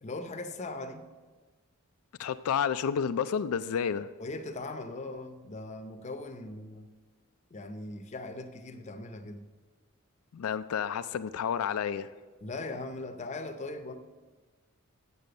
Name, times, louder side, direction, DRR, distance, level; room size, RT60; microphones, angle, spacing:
voice 1, 0.0-1.1 4.2-6.9 7.5-9.4 12.4-13.9, left 2 dB, 35° left, 0.6 m, -39 dB
voice 2, 2.2-4.1 10.3-12.1, left 7 dB, 90° left, 0.4 m, -30 dB
7.2 x 6.8 x 7.6 m
head